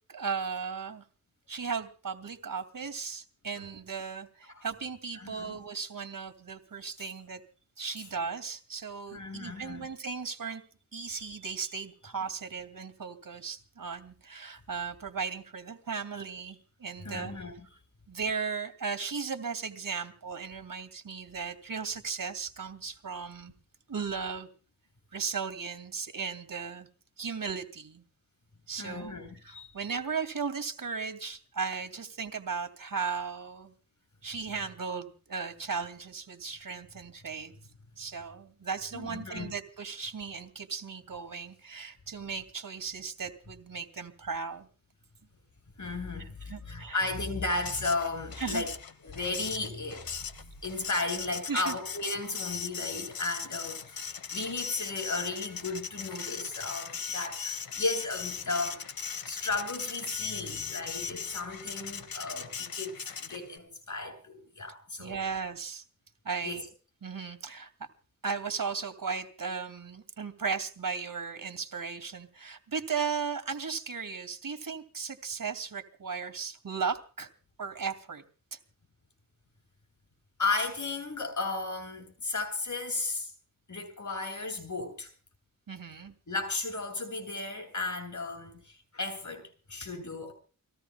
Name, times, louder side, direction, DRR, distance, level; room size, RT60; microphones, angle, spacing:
voice 1, 0.1-1.0 1.5-7.4 7.8-10.6 10.9-17.3 18.1-23.5 23.9-24.5 25.1-26.9 27.2-28.0 28.7-33.7 34.2-37.5 38.0-44.7 46.2-47.0 48.4-48.6 51.5-51.8 65.0-65.8 66.2-66.6 67.0-67.9 68.2-77.3 77.6-78.2 78.5-78.6 85.7-86.1, right 5 dB, 75° right, 2.5 m, -36 dB
voice 2, 5.2-5.6 7.0-7.1 9.1-9.9 11.0-11.5 17.0-17.5 28.8-29.7 38.9-39.5 45.8-48.7 49.0-58.8 59.3-65.2 66.4-66.6 80.4-83.3 83.7-85.1 86.3-90.3, left 3 dB, 60° left, 7.7 m, -35 dB
Printer, 47.4-63.6, left 7 dB, 90° left, 1.3 m, -39 dB
29.5 x 20.0 x 2.3 m
wide cardioid pair, 65°, 34 cm